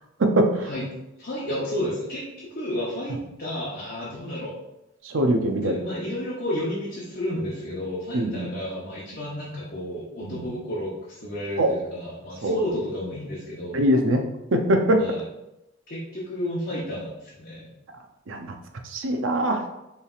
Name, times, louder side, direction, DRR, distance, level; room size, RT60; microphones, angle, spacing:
voice 1, 0.2-0.7 5.0-5.8 8.1-8.5 10.2-10.5 11.6-11.7 12.4-12.6 13.7-15.2 18.3-18.6 18.8-19.6, right 1 dB, 70° right, 4 dB, 0.6 m, -23 dB
voice 2, 1.2-4.5 5.6-13.8 15.0-15.2 15.9-17.7, equal, 45° left, -7 dB, 0.8 m, -31 dB
5.4 x 3.3 x 2.4 m, 0.93 s
head